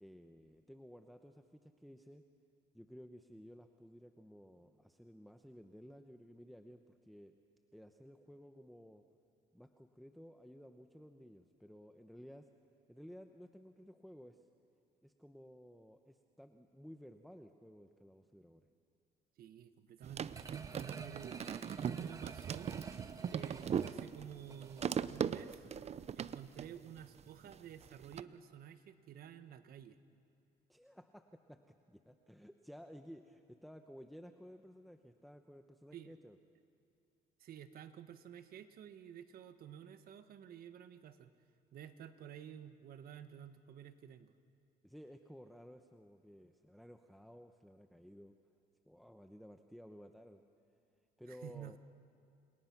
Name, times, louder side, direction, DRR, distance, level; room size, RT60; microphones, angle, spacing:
voice 1, 0.0-2.2 2.7-7.3 7.7-9.0 9.5-12.5 12.9-14.5 15.0-18.7 30.7-36.4 44.8-48.3 48.9-50.4 51.2-51.8, equal, ahead, 6 dB, 1.0 m, -55 dB
voice 2, 19.4-21.4 21.8-22.7 23.3-25.7 26.1-30.0 35.9-36.1 37.4-41.3 41.7-44.3 51.3-51.8, right 9 dB, 60° right, 10 dB, 1.4 m, -52 dB
sound 1, 20.0-27.6 27.8-28.2, right 8 dB, 40° right, 0.7 m, -39 dB
sound 2, 20.3-25.1 25.5-25.6, right 4 dB, 20° right, 1.6 m, -53 dB
28.5 x 28.5 x 6.1 m, 2.5 s
cardioid pair, 110°, 17 cm